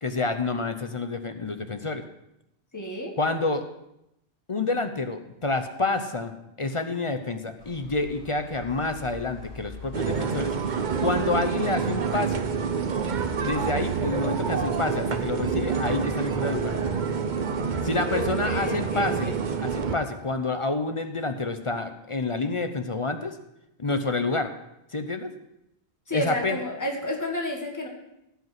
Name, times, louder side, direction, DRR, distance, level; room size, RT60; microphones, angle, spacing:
voice 1, 0.0-2.0 3.2-3.7 4.5-6.3 6.6-10.5 11.0-12.4 13.4-16.7 17.8-23.4 23.8-24.5 24.9-25.3 26.1-26.6, left 3 dB, 35° left, 8 dB, 0.7 m, -28 dB
voice 2, 2.7-3.1 18.1-19.4 26.1-27.9, left 1 dB, 15° left, 0 dB, 1.7 m, -31 dB
sound 1, 7.6-19.0, left 2 dB, 80° left, 2.6 m, -46 dB
sound 2, 9.9-20.0, right 6 dB, 50° right, 0.9 m, -27 dB
16.5 x 5.4 x 5.9 m, 0.85 s
omnidirectional pair, 1.0 m